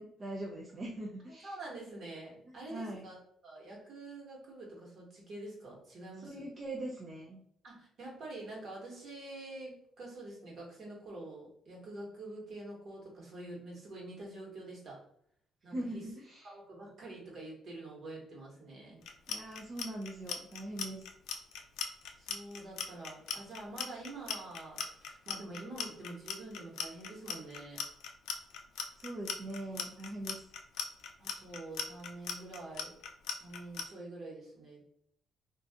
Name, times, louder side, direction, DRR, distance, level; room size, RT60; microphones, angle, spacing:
voice 1, 0.0-1.5 2.5-3.1 6.2-7.4 15.7-16.5 19.3-21.1 29.0-30.4, right 1 dB, 35° right, -2 dB, 0.5 m, -42 dB
voice 2, 1.4-3.2 3.4-6.4 7.6-15.0 15.6-16.0 16.4-19.0 22.1-27.8 31.2-32.9 33.4-34.9, right 2 dB, 60° right, -3 dB, 1.4 m, -46 dB
Clock, 19.0-33.8, left 7 dB, 85° left, 0.4 m, -38 dB
2.5 x 2.4 x 3.5 m, 0.69 s
cardioid pair, 90°, 0 cm